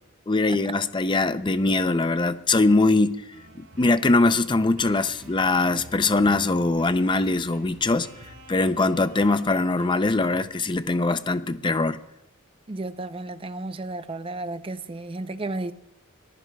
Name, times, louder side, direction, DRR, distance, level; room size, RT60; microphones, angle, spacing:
voice 1, 0.3-3.2 3.5-8.1 8.5-12.0, left 2 dB, 20° left, 0.5 m, -22 dB
sound 1, 3.3-10.4, right 1 dB, 80° right, 3.2 m, -47 dB
voice 2, 12.7-15.7, right 2 dB, 25° right, 0.5 m, -33 dB
25.0 x 19.0 x 2.3 m
head